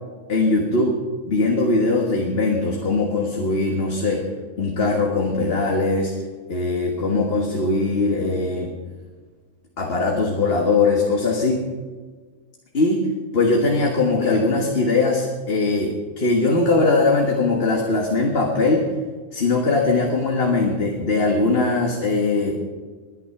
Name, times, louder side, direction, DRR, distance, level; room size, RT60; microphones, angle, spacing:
voice 1, 0.3-1.0 1.3-4.3 4.6-6.1 6.5-8.7 9.8-11.6 12.7-13.0 13.3-18.9 19.3-22.6, left 3 dB, 50° left, 1 dB, 1.7 m, -20 dB
21.0 x 10.0 x 5.8 m, 1.5 s
omnidirectional pair, 1.4 m